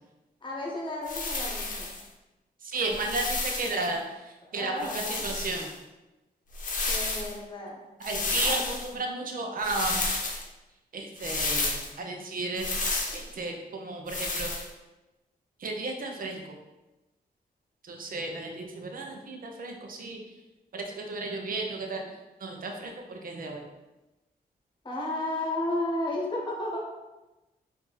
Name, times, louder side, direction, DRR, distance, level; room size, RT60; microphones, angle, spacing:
voice 1, 0.4-1.9 4.4-5.3 6.9-7.8 8.4-8.6 24.8-26.8, left 1 dB, 30° left, -3 dB, 1.2 m, -33 dB
sound 1, 1.0-2.0 2.8-3.9 4.8-5.7 6.5-7.3 8.0-8.9 9.6-10.4 11.2-11.9 12.6-13.2 14.1-14.7, left 3 dB, 50° left, 0.8 m, -31 dB
voice 2, 2.6-4.0 4.5-5.7 8.0-10.0 10.9-12.7 13.1-14.5 15.6-16.5 17.8-20.2 20.7-22.0 22.4-23.6, right 2 dB, 60° right, 2 dB, 0.8 m, -33 dB
4.8 x 2.7 x 4.0 m, 1.1 s
wide cardioid pair, 125°, 17 cm